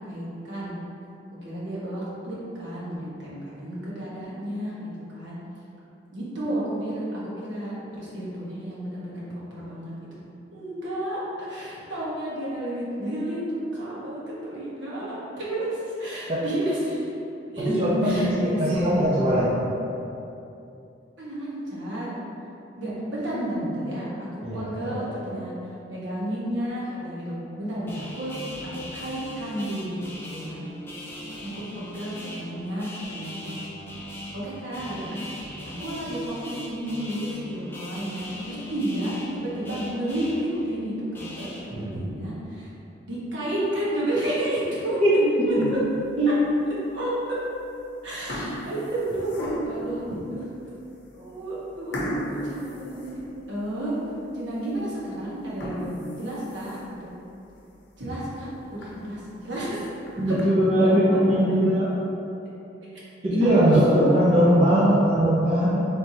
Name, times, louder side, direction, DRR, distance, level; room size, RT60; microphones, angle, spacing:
voice 1, 0.1-0.8 1.4-5.4 6.1-7.0 7.4-10.2 10.5-17.1 17.5-17.7 18.0-18.9 19.3-19.5 21.2-22.2 22.8-24.1 24.5-25.5 25.9-28.3 28.6-30.6 31.4-33.6 34.3-35.3 35.8-42.7 43.0-45.0 45.4-45.8 46.9-47.1 48.0-50.4 51.1-53.1 53.5-53.9 54.3-57.1 58.0-59.9 60.2-60.4 60.6-61.6 63.3-63.6 63.9-64.2, right 1 dB, 75° right, -8 dB, 1.1 m, -32 dB
voice 2, 17.6-19.6 24.4-25.0 41.7-42.0 45.0-45.1 45.4-45.5 46.2-46.3 60.2-61.9 63.2-65.9, equal, 30° right, -9 dB, 0.6 m, -20 dB
sound 1, 27.9-41.6, left 1 dB, 10° left, 0.4 m, -40 dB
sound 2, 45.5-46.0 46.6-46.7 47.5-47.8 48.1-49.9 50.5-50.6 51.0-51.1 51.9-53.7 54.1-54.2 54.7-54.8 55.4-57.0 57.5-57.6 58.0-58.1 58.4-58.5 58.8-58.9 59.8-60.4, equal, 70° left, 0.7 m, -35 dB
4.4 x 3.3 x 2.7 m, 2.8 s
head